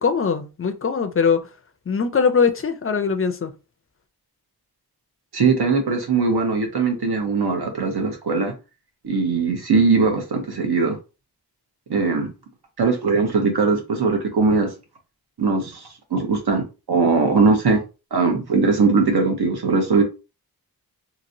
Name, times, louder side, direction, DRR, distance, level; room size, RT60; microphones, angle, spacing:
voice 1, 0.0-1.4 1.9-3.5, left 5 dB, 35° left, 0.4 m, -21 dB
voice 2, 5.3-8.5 9.0-11.0 11.9-12.3 12.8-14.7 15.4-17.8 18.1-20.0, right 4 dB, 70° right, 1.0 m, -20 dB
2.9 x 2.7 x 2.6 m
wide cardioid pair, 125°, 40 cm